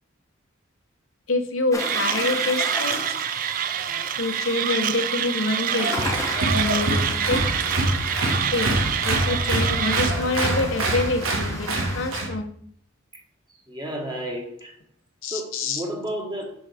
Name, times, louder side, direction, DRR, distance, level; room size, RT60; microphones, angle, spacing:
voice 1, 1.3-3.1 4.1-5.9 6.5-7.4 8.5-8.8 9.0-12.5 15.2-15.8, left 3 dB, 70° left, 1.0 m, -26 dB
sound 1, 1.7-12.1, left 2 dB, 15° left, 0.9 m, -37 dB
Mechanisms, 1.8-10.1, right 10 dB, 45° right, 0.3 m, -27 dB
Applause, 5.7-12.3, right 2 dB, 85° right, 1.5 m, -25 dB
voice 2, 13.7-14.8 15.3-16.5, equal, 20° right, 1.6 m, -32 dB
7.0 x 5.4 x 3.5 m
head